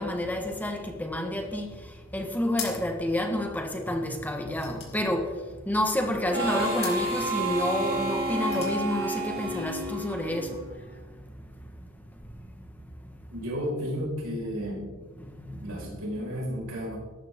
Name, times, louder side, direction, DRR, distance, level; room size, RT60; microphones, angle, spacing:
voice 1, 0.0-1.7 2.1-5.3 5.7-10.6, left 1 dB, 10° left, 1.4 m, -29 dB
sound 1, 2.5-3.1 3.4-3.5 3.7-5.9 6.7-7.1 8.2-8.8, left 6 dB, 30° left, 4.8 m, -40 dB
Harmonica, 6.3-10.8, right 2 dB, 45° right, 3.1 m, -30 dB
voice 2, 13.3-14.9 15.5-17.0, equal, 70° right, 5.2 m, -33 dB
18.5 x 14.0 x 3.7 m
head